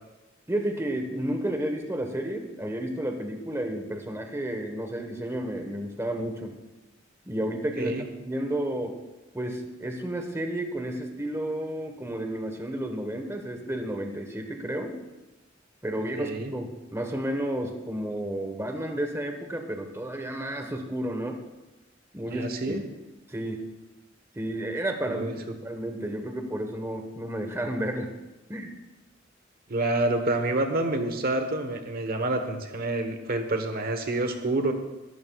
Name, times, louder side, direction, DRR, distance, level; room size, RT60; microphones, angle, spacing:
voice 1, 0.5-6.5 7.3-8.9 9.3-15.0 15.8-21.4 22.1-22.8 23.3-23.6 24.3-28.1 28.5-28.7, right 1 dB, 15° right, 4 dB, 1.2 m, -32 dB
voice 2, 16.2-16.5 22.3-22.8 25.1-25.3 29.7-34.7, right 2 dB, 50° right, 6 dB, 1.2 m, -28 dB
22.0 x 12.5 x 2.4 m, 1.1 s
head